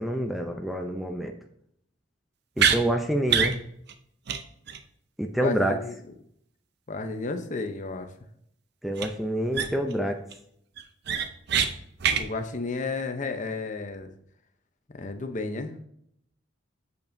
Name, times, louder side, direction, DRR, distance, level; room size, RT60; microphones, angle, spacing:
voice 1, 0.0-1.3 2.6-3.6 5.2-5.8 8.8-10.2, equal, ahead, 4 dB, 0.5 m, -27 dB
sound 1, 2.6-2.8 3.3-3.6 3.9-4.0 4.3-4.4 4.7-4.8 9.0-9.1 9.5-9.9 10.3-10.4 10.8-11.7 12.0-12.2, right 7 dB, 60° right, 0.6 m, -24 dB
voice 2, 5.4-5.9 6.9-8.1 12.2-14.1 14.9-15.7, left 3 dB, 40° left, 7 dB, 0.7 m, -32 dB
8.1 x 6.9 x 2.6 m, 0.71 s
head